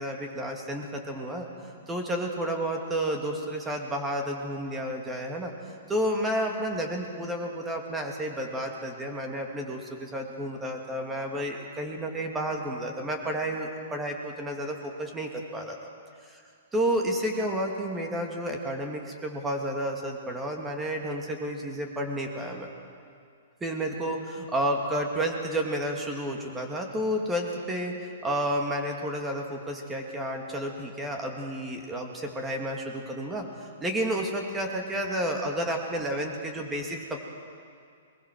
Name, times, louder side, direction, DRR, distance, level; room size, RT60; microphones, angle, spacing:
voice 1, 0.0-1.5 1.9-5.5 5.9-15.8 16.7-22.7 23.6-37.2, right 1 dB, 15° right, 2 dB, 2.6 m, -31 dB
22.0 x 20.5 x 6.3 m, 2.3 s
figure-of-eight pair, 115°, 0 cm